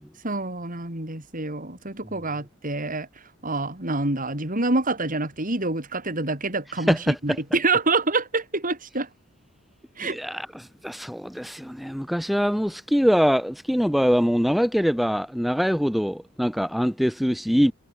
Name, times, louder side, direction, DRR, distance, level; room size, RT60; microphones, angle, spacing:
voice 1, 0.2-3.1 3.4-9.1 10.0-10.2, right 2 dB, 40° right, 4.5 m, -26 dB
voice 2, 6.8-7.4 10.0-17.7, equal, ahead, 2.6 m, -23 dB
head